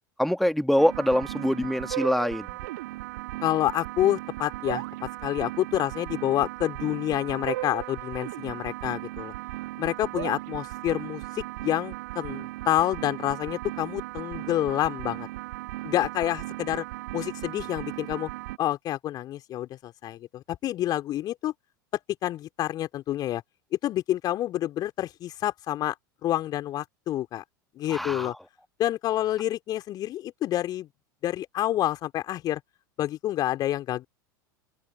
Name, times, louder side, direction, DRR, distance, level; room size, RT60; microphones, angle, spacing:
voice 1, 0.2-2.6 27.9-28.4, equal, ahead, 1.9 m, -24 dB
sound 1, 0.8-18.6, right 18 dB, 60° right, 1.8 m, -36 dB
voice 2, 3.4-4.8 5.2-9.3 9.8-15.3 15.8-16.8 17.1-18.3 18.6-21.5 22.2-23.4 23.8-25.9 26.2-27.4 27.8-28.3 28.8-30.9 31.2-32.6 33.0-34.1, left 13 dB, 40° left, 2.8 m, -28 dB
figure-of-eight pair, 80°, 11 cm